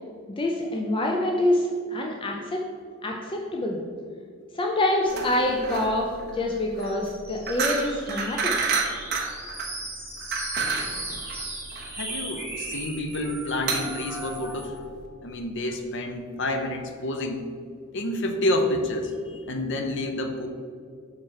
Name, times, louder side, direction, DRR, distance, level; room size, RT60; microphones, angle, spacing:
voice 1, 0.4-2.6 3.0-3.8 4.5-6.1 6.3-8.6, left 1 dB, 25° left, 0 dB, 0.5 m, -26 dB
sound 1, 5.1-15.1, right 4 dB, 50° right, 0.9 m, -31 dB
sound 2, 6.8-14.8, right 2 dB, 10° right, 1.5 m, -37 dB
voice 2, 11.9-14.7 15.2-17.5 17.9-20.5, left 1 dB, 60° left, 5 dB, 0.7 m, -29 dB
5.8 x 4.7 x 4.6 m, 2.1 s
head